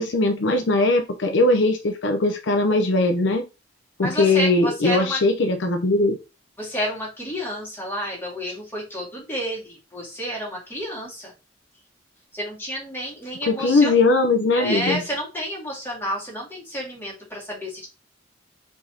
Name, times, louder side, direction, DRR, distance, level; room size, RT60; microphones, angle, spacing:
voice 1, 0.0-3.4 4.0-6.2 13.5-15.0, left 2 dB, 70° left, 4 dB, 0.6 m, -20 dB
voice 2, 4.0-5.2 6.6-11.3 12.3-13.9 14.5-17.9, equal, 10° left, -4 dB, 2.1 m, -30 dB
4.9 x 3.5 x 2.7 m, 0.28 s
head